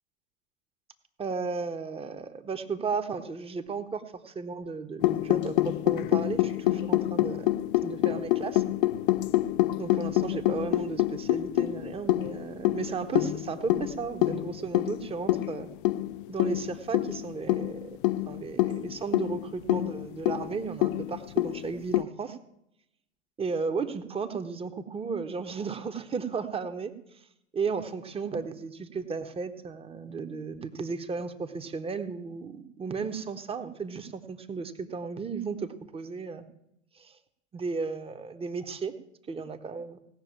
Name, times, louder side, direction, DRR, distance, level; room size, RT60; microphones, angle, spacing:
voice 1, 1.2-7.5 7.8-8.6 9.8-15.7 16.3-18.0 18.3-22.4 23.4-26.9 27.5-36.4 36.9-37.2 37.5-38.9 39.3-40.0, right 5 dB, 15° right, 7 dB, 1.2 m, -34 dB
sound 1, 5.0-22.0, left 16 dB, 45° left, 0.5 m, -27 dB
17.5 x 6.6 x 8.9 m, 0.80 s
figure-of-eight pair, 95°, 37 cm